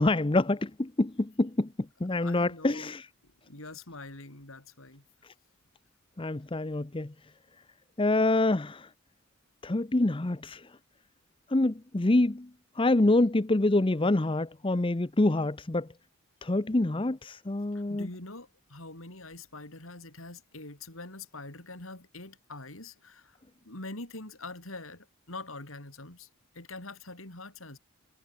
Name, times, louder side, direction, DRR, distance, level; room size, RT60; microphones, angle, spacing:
voice 1, 0.0-1.7 2.0-3.1 6.2-7.1 8.0-8.9 9.6-10.7 11.5-12.5 12.8-15.9 16.4-18.1, left 2 dB, 25° left, 0.7 m, -26 dB
voice 2, 2.2-2.9 3.5-5.0 17.9-23.4 23.6-26.3 26.5-27.8, left 2 dB, 75° left, 4.9 m, -44 dB
head